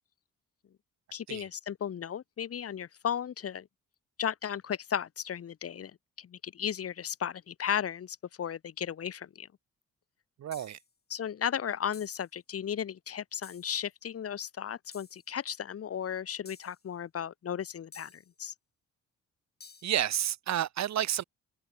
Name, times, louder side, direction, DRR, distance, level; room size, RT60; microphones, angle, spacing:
voice 1, 1.1-3.7 4.2-5.9 6.2-9.5 11.1-18.5, left 8 dB, 50° left, 1.6 m, -35 dB
voice 2, 10.4-10.8 19.8-21.2, right 11 dB, 65° right, 1.5 m, -30 dB
sound 1, 10.5-10.9 11.9-12.3 13.4-13.8 14.9-15.2 16.4-16.8 17.9-18.3 19.6-20.0, left 5 dB, 30° left, 6.2 m, -53 dB
cardioid pair, 90°, 30 cm